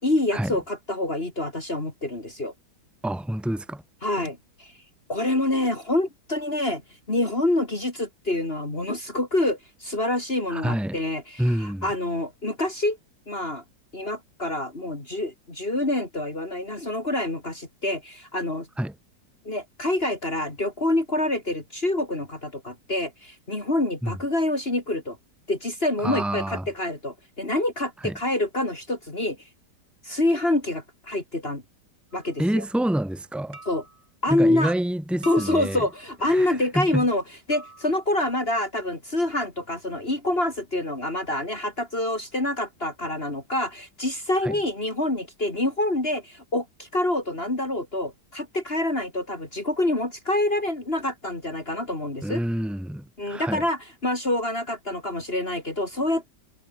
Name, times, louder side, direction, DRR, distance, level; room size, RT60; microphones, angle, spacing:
voice 1, 0.0-2.5 4.0-4.7 5.1-6.8 7.1-13.0 13.3-13.6 13.9-18.7 19.4-25.2 25.5-29.4 30.0-31.6 32.1-32.6 33.7-33.8 34.2-34.7 35.3-37.2 37.5-52.4 53.2-56.3, left 1 dB, 30° left, 3.9 m, -26 dB
voice 2, 3.0-3.8 10.5-11.0 11.4-11.9 18.8-18.9 24.0-24.1 26.0-26.7 28.0-28.2 32.4-33.6 34.3-35.8 36.3-37.0 44.4-44.5 52.2-53.6, right 1 dB, ahead, 2.6 m, -27 dB
sound 1, 32.1-32.4 33.5-34.1 35.2-36.1 37.5-38.2, right 3 dB, 35° right, 3.1 m, -44 dB
omnidirectional pair, 2.0 m